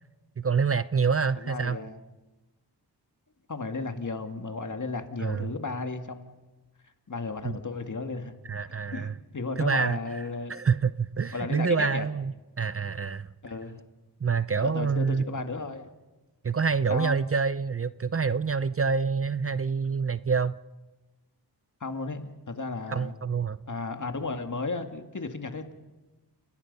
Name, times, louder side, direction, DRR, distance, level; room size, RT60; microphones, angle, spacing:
voice 1, 0.4-1.8 5.2-5.5 8.4-9.2 9.6-10.0 10.5-13.3 14.2-15.4 16.4-20.6 22.9-23.6, right 5 dB, 35° right, 15 dB, 0.6 m, -27 dB
voice 2, 1.4-2.0 3.5-6.3 7.1-8.3 8.9-10.5 11.3-12.1 13.4-13.8 14.6-15.9 16.9-17.2 21.8-23.1 23.7-25.7, left 3 dB, 45° left, 6 dB, 2.2 m, -34 dB
29.5 x 19.0 x 5.5 m, 1.2 s
cardioid pair, 60°, 41 cm